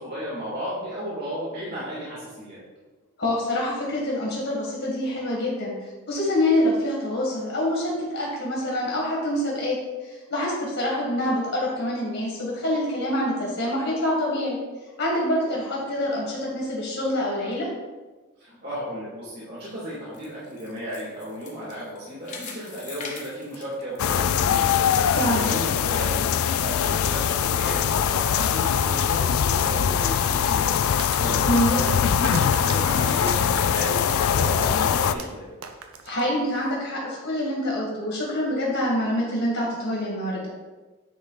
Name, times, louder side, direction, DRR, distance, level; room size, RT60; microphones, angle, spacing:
voice 1, 0.0-2.6 18.4-24.7 25.3-30.7 31.2-35.5, equal, 50° right, -8 dB, 2.2 m, -34 dB
voice 2, 3.2-9.8 10.0-14.6 15.0-17.7 25.0-25.5 31.5-31.7 36.0-40.5, left 1 dB, 65° left, -4 dB, 1.8 m, -26 dB
sound 1, 19.7-24.6 25.0-25.1 25.7-25.8, left 4 dB, 35° left, 1.1 m, -42 dB
sound 2, 24.0-35.1, left 8 dB, 85° left, 0.3 m, -22 dB
sound 3, 31.0-36.8, right 5 dB, 80° right, 0.6 m, -40 dB
9.2 x 3.6 x 4.0 m, 1.3 s
head